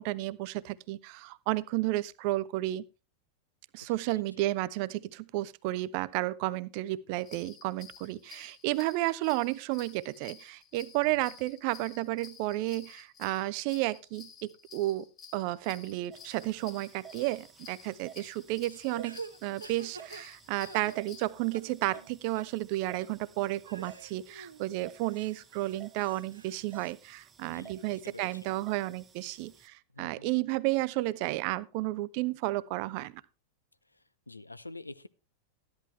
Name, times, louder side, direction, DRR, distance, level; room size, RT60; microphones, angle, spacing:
voice 1, 0.0-2.8 3.7-15.1 15.3-33.2, right 18 dB, 45° right, 0.5 m, -32 dB
voice 2, 3.8-4.4 11.0-11.4 27.5-28.5 29.9-30.3 33.9-35.1, left 3 dB, 85° left, 0.5 m, -48 dB
sound 1, 7.2-21.2, left 7 dB, 30° left, 2.3 m, -53 dB
sound 2, 16.1-29.7, right 8 dB, 20° right, 0.8 m, -55 dB
sound 3, 18.7-21.3 21.5-22.1 22.4-22.5 23.0-23.1 23.7-24.6 25.1-26.9, right 4 dB, 75° right, 0.8 m, -47 dB
13.0 x 10.5 x 3.2 m
figure-of-eight pair, 90°, 0 cm